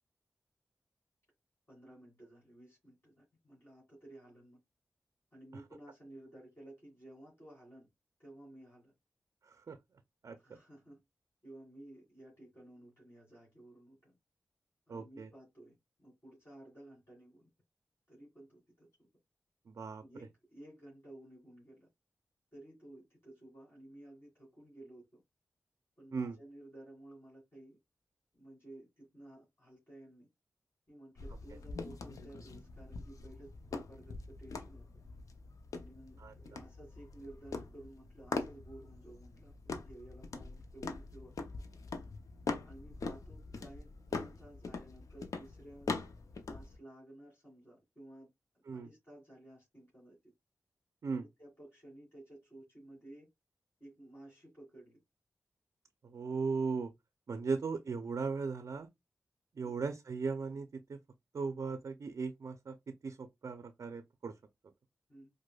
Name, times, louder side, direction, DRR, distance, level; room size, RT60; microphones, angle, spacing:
voice 1, 1.7-4.6 5.3-7.9 8.2-8.9 10.4-11.0 11.4-14.1 14.9-17.5 18.1-18.9 20.0-21.9 22.5-25.2 26.0-27.8 28.3-30.3 30.9-34.8 35.7-41.6 42.6-45.9 46.5-48.3 48.7-50.2 51.1-53.3 53.8-55.0 59.6-59.9 65.1-65.3, right 1 dB, 50° left, 2.0 m, -55 dB
voice 2, 9.4-9.8 10.2-10.6 14.9-15.3 19.7-20.0 26.1-26.4 36.2-36.6 48.7-48.9 51.0-51.3 56.0-56.9 57.3-58.9 59.6-61.0 61.3-64.4, right 4 dB, 65° right, 0.4 m, -38 dB
sound 1, 31.2-46.8, left 4 dB, 75° left, 0.5 m, -43 dB
4.7 x 2.1 x 2.2 m
cardioid pair, 45°, 6 cm